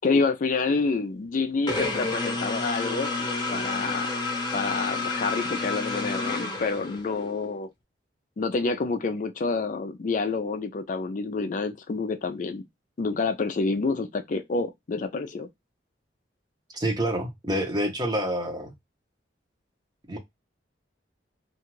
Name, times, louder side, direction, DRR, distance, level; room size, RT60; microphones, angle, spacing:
voice 1, 0.0-4.1 4.5-7.7 8.4-12.6 13.0-15.5, left 4 dB, 45° left, 0.4 m, -28 dB
sound 1, 1.7-7.3, left 3 dB, 25° left, 0.9 m, -30 dB
voice 2, 16.7-18.7 20.1-20.2, right 1 dB, 25° right, 0.8 m, -27 dB
2.5 x 2.3 x 2.9 m
head